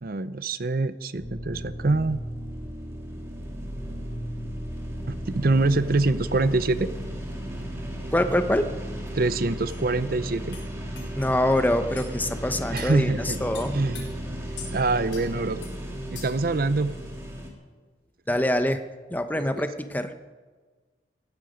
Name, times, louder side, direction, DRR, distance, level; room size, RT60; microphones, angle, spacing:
voice 1, 0.0-2.2 5.1-6.9 9.1-10.6 12.7-13.4 13.7-14.1 14.7-15.6 16.1-16.9 19.4-19.7, right 3 dB, 50° right, 14 dB, 0.6 m, -25 dB
sound 1, 1.1-17.5, equal, 15° right, 2.5 m, -35 dB
voice 2, 8.1-8.7 11.2-13.8 18.3-18.8 19.1-20.1, left 1 dB, 10° left, 9 dB, 0.8 m, -25 dB
sound 2, 9.1-9.2 9.7-9.8 10.5-10.7 10.9-11.1 12.0-12.1 12.8-13.0 13.5-14.0 14.6-14.7 15.1-15.3 15.6-15.7 16.1-16.5, left 7 dB, 85° left, 4.6 m, -42 dB
19.0 x 14.5 x 5.1 m, 1.4 s
head